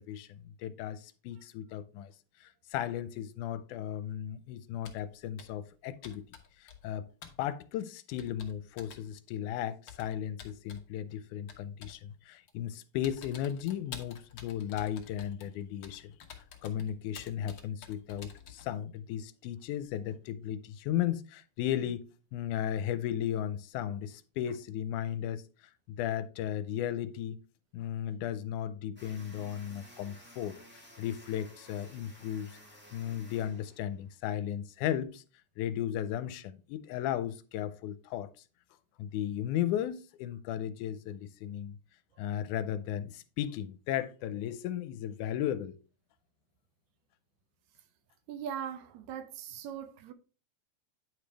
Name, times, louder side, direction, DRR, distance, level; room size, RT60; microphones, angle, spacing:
voice 1, 0.0-2.1 2.4-6.3 6.6-7.1 7.4-16.1 16.6-25.4 25.9-27.4 27.7-30.6 31.0-32.5 32.9-35.2 35.6-38.3 39.0-41.8 42.2-45.8, left 10 dB, 90° left, 2.1 m, -35 dB
Computer keyboard, 4.8-5.1 5.4-5.7 6.0-7.0 7.2-7.4 8.2-9.1 9.9-10.9 11.5-12.0 12.5-12.7 13.0-18.7, left 7 dB, 60° left, 1.2 m, -50 dB
sound 1, 29.0-34.1, equal, 10° right, 0.6 m, -55 dB
voice 2, 48.3-50.1, right 8 dB, 75° right, 1.8 m, -40 dB
9.6 x 5.1 x 3.3 m
omnidirectional pair, 3.5 m